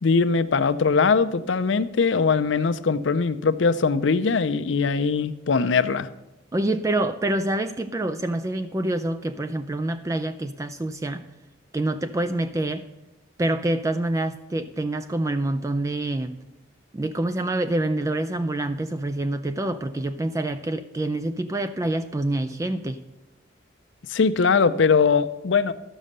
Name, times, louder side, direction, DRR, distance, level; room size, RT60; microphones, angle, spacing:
voice 1, 0.0-6.1 24.1-25.7, left 5 dB, 70° left, 13 dB, 0.5 m, -21 dB
voice 2, 6.5-11.2 11.7-12.8 13.4-16.4 16.9-23.0, right 1 dB, 15° right, 10 dB, 0.3 m, -26 dB
12.5 x 6.3 x 6.6 m, 0.99 s
head